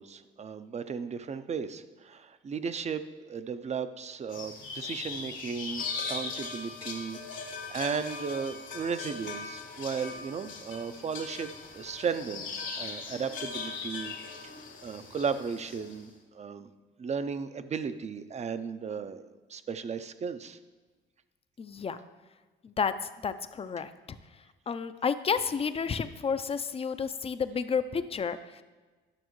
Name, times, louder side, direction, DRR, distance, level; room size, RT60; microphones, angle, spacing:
voice 1, 0.0-7.4 7.7-11.5 11.7-14.1 14.8-16.7 17.0-20.6, right 6 dB, 35° right, 12 dB, 0.5 m, -35 dB
sound 1, 4.3-16.0, left 4 dB, 75° left, 1.5 m, -39 dB
voice 2, 21.6-22.0 22.6-22.9 23.2-24.2 24.7-28.6, left 6 dB, 30° left, 12 dB, 0.4 m, -31 dB
11.5 x 6.2 x 3.1 m, 1.3 s
cardioid pair, 90°, 20 cm